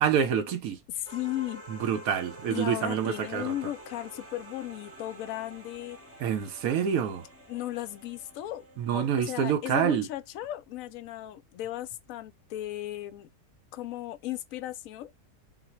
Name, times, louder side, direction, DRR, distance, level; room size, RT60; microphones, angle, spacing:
voice 1, 0.0-0.8 1.8-3.5 6.2-7.2 8.8-10.1, right 8 dB, 70° right, 1.0 m, -27 dB
voice 2, 0.9-1.6 2.5-6.0 7.5-13.3 13.7-15.1, left 14 dB, 70° left, 0.9 m, -36 dB
sound 1, 1.1-9.7, right 1 dB, 10° right, 0.7 m, -48 dB
3.9 x 2.0 x 4.3 m
omnidirectional pair, 1.7 m